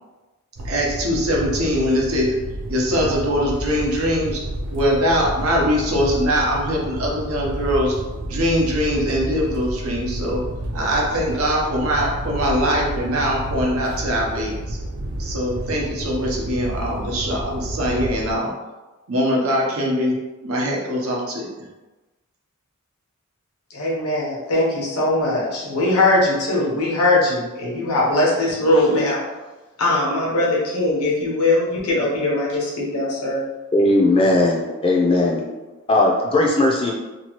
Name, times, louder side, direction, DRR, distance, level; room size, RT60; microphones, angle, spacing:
sound 1, 0.6-18.3, right 1 dB, 50° right, 0.4 m, -30 dB
voice 1, 0.6-2.4 2.7-4.4 4.7-7.9 8.2-10.4 10.7-14.8 15.2-18.5 19.1-20.2 20.4-21.5, equal, 75° right, -2 dB, 0.7 m, -22 dB
voice 2, 23.7-29.2 29.8-33.4, left 2 dB, 90° left, -5 dB, 0.9 m, -20 dB
voice 3, 33.7-35.4 35.9-36.9, left 2 dB, 25° left, -2 dB, 0.4 m, -17 dB
2.9 x 2.3 x 2.9 m, 1.2 s
head